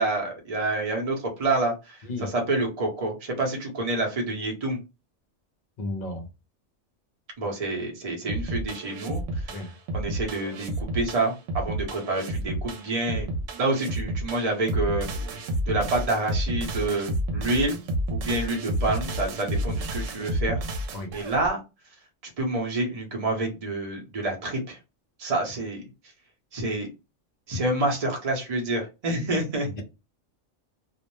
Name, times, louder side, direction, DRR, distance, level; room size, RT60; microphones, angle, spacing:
voice 1, 0.0-4.8 7.4-9.5 9.9-13.3 13.6-15.1 15.7-17.8 18.1-20.6 21.1-21.6 22.4-24.8 25.2-25.8 26.5-26.9 27.5-29.7, right 2 dB, 35° right, 0.8 m, -28 dB
voice 2, 5.8-6.3 9.5-9.7 20.9-21.1, left 2 dB, 45° left, 0.6 m, -33 dB
sound 1, 8.3-21.5, right 1 dB, 85° right, 1.0 m, -30 dB
2.4 x 2.1 x 3.0 m
omnidirectional pair, 1.3 m